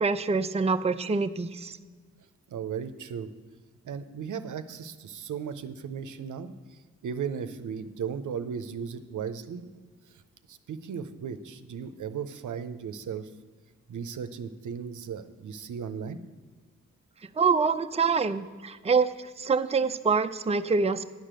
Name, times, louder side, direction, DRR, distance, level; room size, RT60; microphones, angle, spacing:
voice 1, 0.0-1.8 17.4-19.1 19.4-21.0, right 4 dB, 20° right, 10 dB, 0.5 m, -25 dB
voice 2, 2.5-3.3 3.8-9.7 10.5-13.3 13.9-16.2, right 7 dB, 80° right, 10 dB, 0.7 m, -36 dB
10.5 x 5.0 x 7.5 m, 1.5 s
cardioid pair, 55°, 30 cm